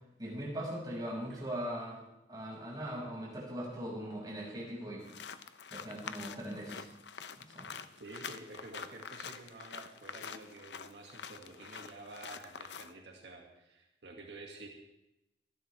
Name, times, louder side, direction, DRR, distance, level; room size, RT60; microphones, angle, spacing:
voice 1, 0.2-2.0 2.3-5.0 5.7-6.9 7.4-7.7, equal, 25° right, -4 dB, 5.9 m, -40 dB
sound 1, 5.0-12.9, left 6 dB, 85° left, 0.8 m, -46 dB
voice 2, 8.0-14.7, right 2 dB, 80° right, 0 dB, 2.2 m, -50 dB
26.5 x 11.5 x 3.5 m, 0.92 s
head